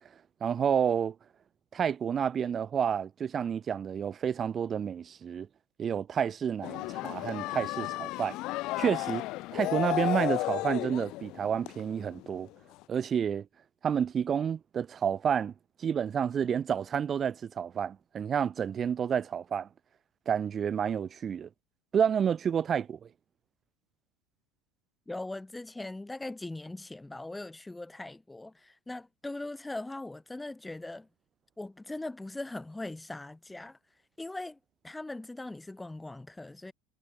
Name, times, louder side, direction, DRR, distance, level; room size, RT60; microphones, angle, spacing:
voice 1, 0.4-1.2 1.7-5.5 5.8-8.4 8.8-9.2 9.5-12.5 12.9-13.5 13.8-15.5 15.8-19.7 20.3-21.5 21.9-23.0, right 8 dB, 35° right, 1.9 m, -29 dB
sound 1, 6.6-12.5 12.8-12.9, left 19 dB, 55° left, 0.9 m, -34 dB
voice 2, 25.1-31.1 31.6-33.8 34.2-34.6 34.8-36.7, left 2 dB, 10° left, 3.4 m, -40 dB
hypercardioid pair, 75°, 0 cm